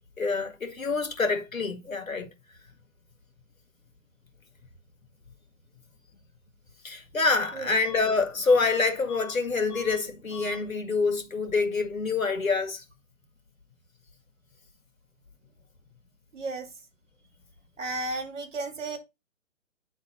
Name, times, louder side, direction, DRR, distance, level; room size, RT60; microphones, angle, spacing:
voice 1, 0.2-2.3 6.8-12.8, left 4 dB, 80° left, 2.0 m, -26 dB
Bus / Alarm, 7.2-7.5 7.8-9.4 9.7-10.0 10.3-10.6, left 4 dB, 20° left, 1.2 m, -45 dB
voice 2, 16.3-16.7 17.8-19.0, right 2 dB, 60° right, 2.5 m, -33 dB
9.2 x 4.0 x 3.7 m
figure-of-eight pair, 145°, 41 cm